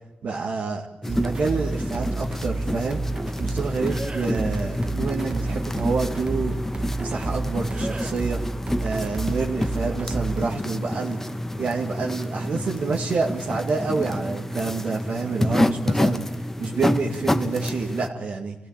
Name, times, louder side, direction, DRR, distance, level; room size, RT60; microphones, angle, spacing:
voice 1, 0.2-3.0 3.4-6.5 7.0-8.4 8.8-18.6, right 4 dB, 75° right, -2 dB, 2.1 m, -28 dB
sound 1, 1.0-18.1, left 1 dB, 15° left, 1.1 m, -28 dB
sound 2, 1.1-10.5, right 3 dB, 40° right, 1.1 m, -31 dB
28.0 x 16.5 x 9.0 m, 0.97 s
cardioid pair, 90°, 3 cm